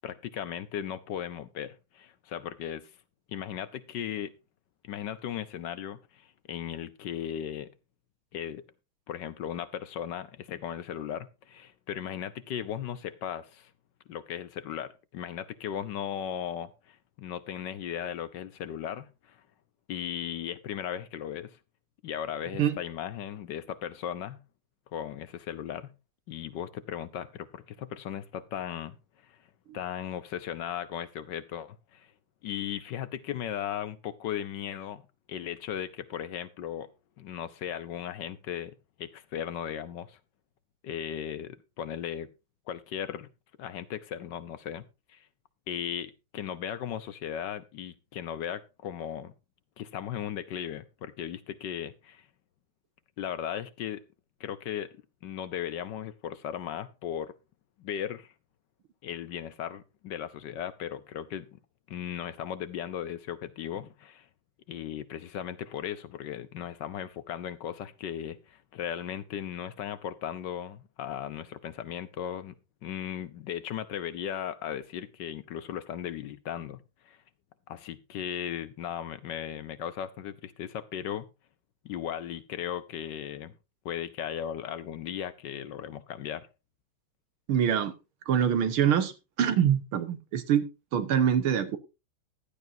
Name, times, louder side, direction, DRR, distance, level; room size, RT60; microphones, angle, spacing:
voice 1, 0.0-2.9 3.3-4.3 4.8-7.7 8.3-8.6 9.1-13.7 14.1-19.4 19.9-21.6 22.0-24.4 24.9-25.9 26.3-29.0 29.3-29.4 29.7-32.1 32.4-35.0 35.3-36.9 37.2-38.7 39.0-40.2 40.8-42.3 42.7-43.3 43.6-44.8 45.1-45.3 45.7-49.3 49.8-52.3 53.2-54.0 54.4-54.9 55.2-57.3 57.8-58.3 59.0-61.5 61.9-64.3 64.7-72.5 72.8-77.2 77.7-81.3 81.8-83.5 83.8-86.5, left 9 dB, 65° left, 1.3 m, -37 dB
voice 2, 87.5-87.9 88.3-89.1 89.4-91.8, right 9 dB, 85° right, 2.1 m, -25 dB
15.5 x 11.5 x 2.7 m
omnidirectional pair, 2.3 m